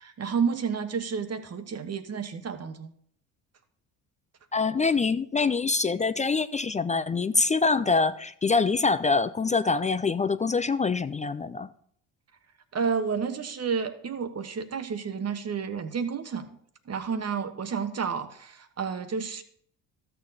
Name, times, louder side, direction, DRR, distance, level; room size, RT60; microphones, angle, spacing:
voice 1, 0.0-2.9 12.7-16.5 16.9-19.4, right 6 dB, 40° right, 1.3 m, -30 dB
voice 2, 4.5-11.7, left 4 dB, 20° left, 0.4 m, -25 dB
13.0 x 7.0 x 4.1 m
supercardioid pair, 65°, 41 cm